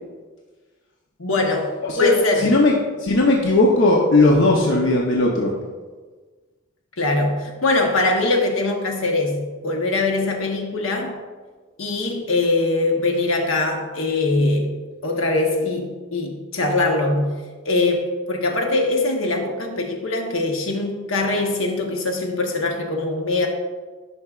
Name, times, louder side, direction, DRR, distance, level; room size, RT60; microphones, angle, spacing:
voice 1, 1.2-2.5 7.0-11.2 11.8-17.3 17.6-23.5, left 2 dB, 80° left, 2 dB, 1.1 m, -22 dB
voice 2, 2.4-5.5, left 2 dB, 65° left, -1 dB, 0.8 m, -17 dB
10.5 x 5.6 x 2.4 m, 1.4 s
head